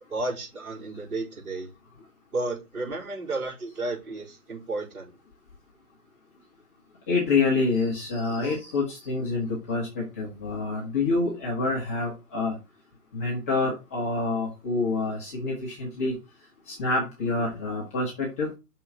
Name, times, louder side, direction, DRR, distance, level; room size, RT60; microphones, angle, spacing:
voice 1, 0.1-1.7 2.3-5.1, right 2 dB, 65° right, -3 dB, 4.3 m, -32 dB
voice 2, 7.1-12.6 13.1-16.1 16.7-18.5, left 3 dB, 10° left, -4 dB, 0.7 m, -27 dB
6.1 x 3.8 x 5.3 m, 0.27 s
hypercardioid pair, 150°, 46 cm